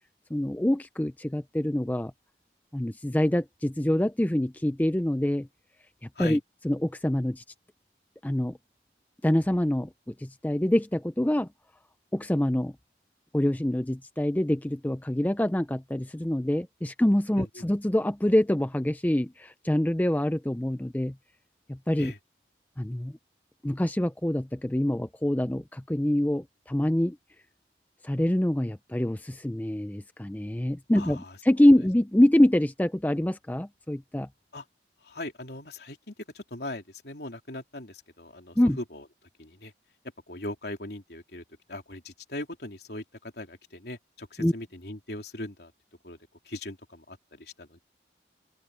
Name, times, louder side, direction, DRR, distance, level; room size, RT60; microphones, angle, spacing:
voice 1, 0.3-2.1 2.7-5.5 6.2-6.4 6.6-7.4 8.2-8.6 9.2-11.5 12.1-12.7 13.3-21.1 21.7-22.1 22.8-23.1 23.6-27.2 28.0-34.3 38.6-38.8 44.4-44.5, left 1 dB, 10° left, 0.4 m, -25 dB
voice 2, 30.9-31.4 34.5-34.6 35.0-39.1 39.4-39.7 40.3-45.7 46.0-46.2 46.5-47.8, left 1 dB, 65° left, 3.4 m, -40 dB
open air
head